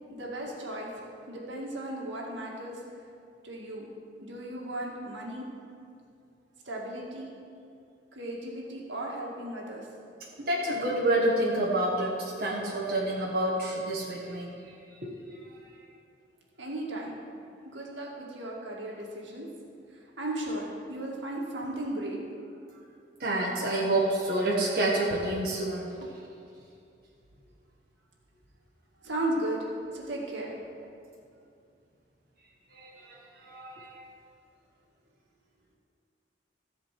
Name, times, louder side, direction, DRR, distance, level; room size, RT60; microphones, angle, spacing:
voice 1, 0.1-0.9 1.3-2.8 3.4-3.9 4.2-5.5 6.7-7.3 8.1-9.9 16.6-17.1 17.7-19.5 19.9-22.2 22.7-22.8 26.0-26.1 29.0-30.6, right 1 dB, 80° right, -2 dB, 2.0 m, -35 dB
voice 2, 10.4-14.7 15.0-15.6 23.2-25.9 32.7-34.0, right 1 dB, 55° right, -4 dB, 1.5 m, -29 dB
14.0 x 5.1 x 7.5 m, 2.5 s
head